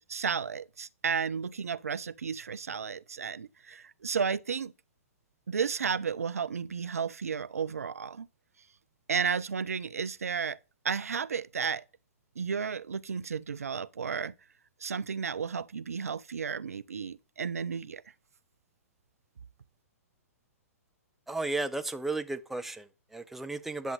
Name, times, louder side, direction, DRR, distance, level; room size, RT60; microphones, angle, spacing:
voice 1, 0.1-4.7 5.5-8.3 9.1-10.6 10.8-11.8 12.4-14.3 14.8-18.0, right 6 dB, 70° right, 0.5 m, -33 dB
voice 2, 21.3-23.9, right 2 dB, 5° right, 0.7 m, -34 dB
10.5 x 7.1 x 3.8 m
figure-of-eight pair, 115°, 8 cm